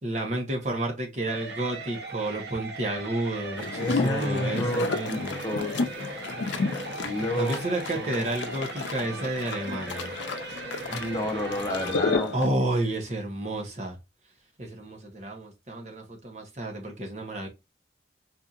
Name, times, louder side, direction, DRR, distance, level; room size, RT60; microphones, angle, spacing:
voice 1, 0.0-5.4 7.4-10.1 12.3-14.0 14.6-17.5, right 1 dB, 40° right, 1.0 m, -31 dB
sound 1, 1.3-12.2, right 3 dB, 65° right, 0.9 m, -38 dB
sound 2, 3.6-12.5, left 4 dB, 85° left, 0.5 m, -32 dB
voice 2, 3.7-5.9 7.0-7.6 7.9-8.2 10.9-12.4, left 1 dB, 20° left, 0.8 m, -30 dB
4.3 x 2.8 x 2.4 m
head